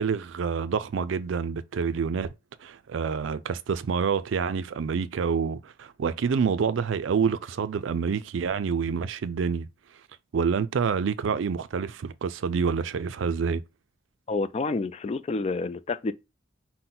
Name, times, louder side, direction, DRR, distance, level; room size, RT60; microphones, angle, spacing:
voice 1, 0.0-2.3 2.6-9.7 10.3-13.6, right 6 dB, 80° right, 0.4 m, -27 dB
voice 2, 14.3-16.1, left 3 dB, 35° left, 0.3 m, -29 dB
5.9 x 2.1 x 3.8 m
head